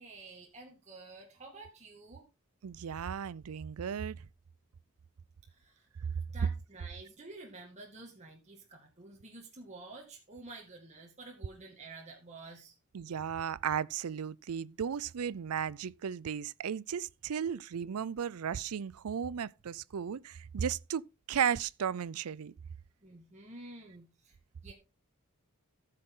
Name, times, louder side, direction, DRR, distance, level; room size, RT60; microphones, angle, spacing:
voice 1, 0.0-2.3 5.5-12.7 23.0-24.4 24.6-24.7, right 2 dB, 30° right, 2.1 m, -50 dB
voice 2, 2.6-4.2 12.9-22.5, right 8 dB, 85° right, 0.5 m, -35 dB
14.5 x 6.5 x 3.8 m
head